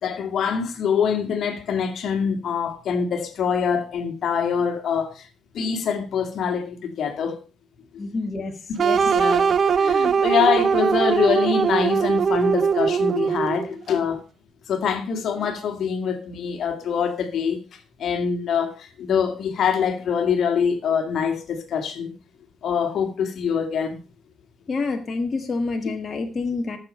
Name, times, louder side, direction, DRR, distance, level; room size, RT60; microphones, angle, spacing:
voice 1, 0.0-5.3 5.5-7.4 9.1-14.2 14.7-22.1 22.6-24.0, left 7 dB, 65° left, 2.1 m, -24 dB
voice 2, 8.0-8.5 8.8-9.0 24.7-26.8, left 3 dB, 40° left, 1.7 m, -27 dB
sound 1, 8.8-13.7, right 6 dB, 50° right, 0.6 m, -20 dB
14.0 x 6.8 x 5.4 m
cardioid pair, 90°, 0 cm